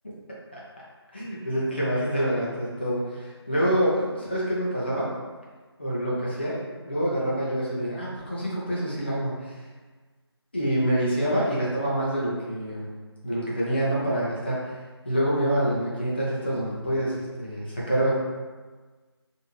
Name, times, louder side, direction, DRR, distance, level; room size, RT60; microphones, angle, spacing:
voice 1, 1.1-5.1 5.8-9.6 10.5-12.9 13.2-14.8 15.0-18.2, equal, 25° left, -7 dB, 0.6 m, -26 dB
3.0 x 2.6 x 3.0 m, 1.4 s
figure-of-eight pair, 170°, 14 cm